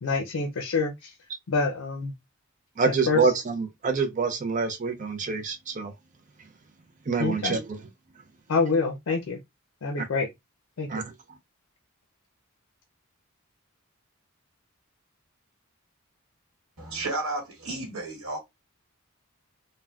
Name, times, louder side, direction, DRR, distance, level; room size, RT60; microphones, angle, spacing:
voice 1, 0.0-1.1 1.5-2.1 3.1-3.2 7.2-7.6 8.5-9.4 9.8-10.3 10.8-10.9, left 4 dB, 85° left, 0.5 m, -26 dB
voice 2, 2.8-5.9 7.1-7.8 10.0-10.1 10.9-11.0, right 4 dB, 35° right, 0.5 m, -26 dB
voice 3, 16.8-18.4, right 2 dB, 80° right, 1.4 m, -32 dB
3.4 x 2.2 x 2.3 m
head